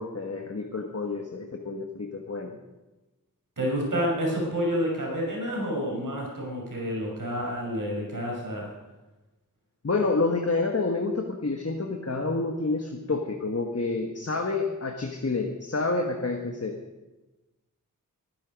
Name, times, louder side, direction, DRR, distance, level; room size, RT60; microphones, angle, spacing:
voice 1, 0.0-2.5 9.8-16.8, left 3 dB, 45° left, 3 dB, 1.5 m, -28 dB
voice 2, 3.6-8.7, equal, 70° right, -2 dB, 5.4 m, -29 dB
22.0 x 11.0 x 5.2 m, 1.1 s
wide cardioid pair, 55°, 34 cm